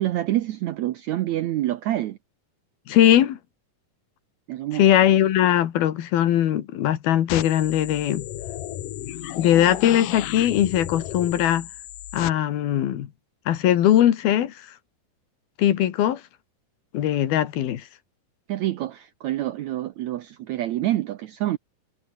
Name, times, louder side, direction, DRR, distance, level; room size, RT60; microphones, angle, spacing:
voice 1, 0.0-2.2 4.5-4.8 18.5-21.6, right 14 dB, 75° right, 1.7 m, -27 dB
voice 2, 2.9-3.4 4.7-8.3 9.4-11.7 12.1-13.1 13.5-14.5 15.6-16.2 16.9-17.9, left 11 dB, 90° left, 3.7 m, -20 dB
sound 1, 7.3-12.3, left 13 dB, 70° left, 2.7 m, -34 dB
omnidirectional pair, 4.2 m